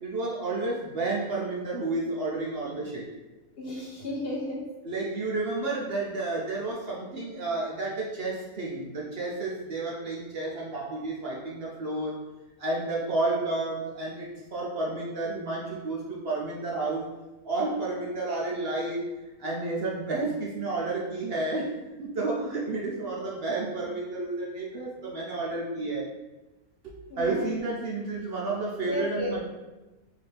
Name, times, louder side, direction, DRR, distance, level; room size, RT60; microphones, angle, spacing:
voice 1, 0.0-3.0 4.8-12.2 12.6-17.1 17.4-19.0 19.4-26.0 26.8-29.4, right 2 dB, 55° right, -4 dB, 0.7 m, -31 dB
voice 2, 3.6-4.7 27.1-27.5 28.9-29.4, left 1 dB, 55° left, -2 dB, 0.7 m, -33 dB
4.1 x 2.8 x 3.3 m, 1.1 s
omnidirectional pair, 1.5 m